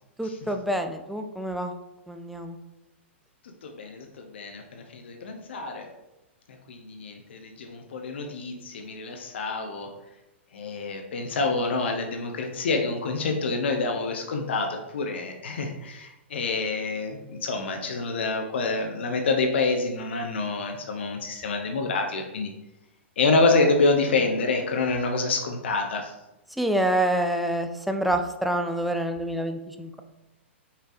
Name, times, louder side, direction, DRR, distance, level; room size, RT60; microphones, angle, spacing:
voice 1, 0.2-1.7 2.1-2.6 26.6-30.0, right 1 dB, ahead, 5 dB, 0.4 m, -27 dB
voice 2, 3.6-4.1 4.3-5.9 6.7-9.9 10.5-22.5 23.2-26.1, left 3 dB, 65° left, 3 dB, 0.6 m, -27 dB
5.4 x 3.3 x 2.5 m, 0.97 s
figure-of-eight pair, 105°, 7 cm